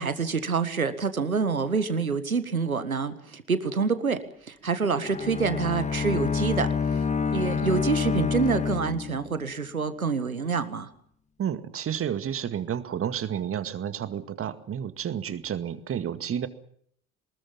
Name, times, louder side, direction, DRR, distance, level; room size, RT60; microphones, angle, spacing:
voice 1, 0.0-4.2 4.5-6.7 7.3-10.9, right 5 dB, 85° right, 12 dB, 1.8 m, -27 dB
Bowed string instrument, 4.8-9.6, left 6 dB, 15° left, 1.8 m, -28 dB
voice 2, 11.4-16.5, right 9 dB, 30° right, 12 dB, 2.0 m, -31 dB
23.5 x 20.5 x 7.4 m, 0.65 s
figure-of-eight pair, 65°, 41 cm